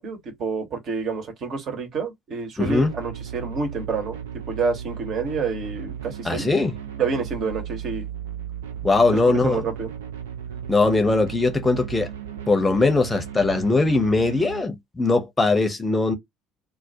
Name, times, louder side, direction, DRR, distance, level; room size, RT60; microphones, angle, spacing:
voice 1, 0.0-4.2 4.5-6.5 7.0-8.0 9.2-9.9, right 4 dB, 45° right, 0.9 m, -28 dB
voice 2, 2.6-2.9 6.2-6.7 8.8-9.6 10.7-12.1 12.5-16.2, left 3 dB, 15° left, 0.7 m, -20 dB
sound 1, 2.6-14.6, right 9 dB, 75° right, 0.4 m, -35 dB
2.2 x 2.1 x 2.6 m
figure-of-eight pair, 60°, 0 cm